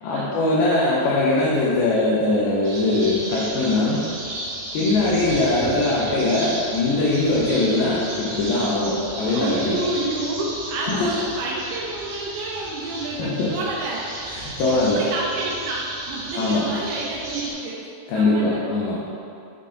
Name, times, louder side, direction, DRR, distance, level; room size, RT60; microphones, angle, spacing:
voice 1, 0.0-4.1 4.7-9.8 10.9-11.2 13.2-13.6 14.3-15.0 16.3-16.7 18.1-19.0, left 2 dB, 80° left, -6 dB, 2.2 m, -21 dB
sound 1, 2.6-17.5, right 1 dB, 65° right, 2.0 m, -34 dB
voice 2, 9.3-14.1 14.7-18.6, right 2 dB, 80° right, -4 dB, 2.3 m, -29 dB
6.7 x 3.9 x 3.7 m, 2.6 s
omnidirectional pair, 5.0 m